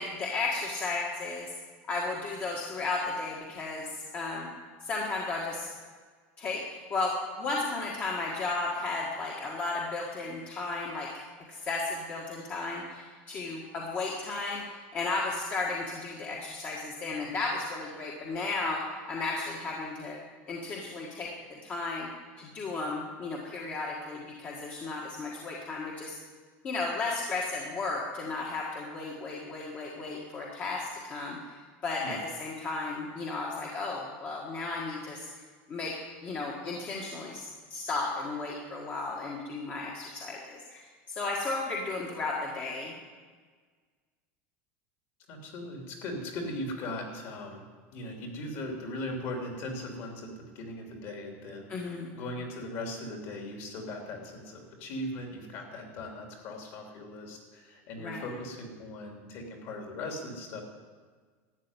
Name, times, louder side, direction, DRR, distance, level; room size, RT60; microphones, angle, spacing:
voice 1, 0.0-1.5 1.9-4.5 4.8-5.7 6.4-11.1 11.5-14.6 14.9-18.8 19.1-20.2 20.5-21.3 21.6-22.1 22.4-26.1 26.6-31.5 31.8-35.3 35.7-36.0 36.2-42.9 51.7-52.1 58.0-58.2, left 3 dB, 25° left, -2 dB, 1.6 m, -34 dB
voice 2, 45.3-47.6 47.9-60.6, left 1 dB, 45° left, 2 dB, 3.0 m, -39 dB
12.5 x 8.7 x 9.7 m, 1.5 s
supercardioid pair, 170°, 7 cm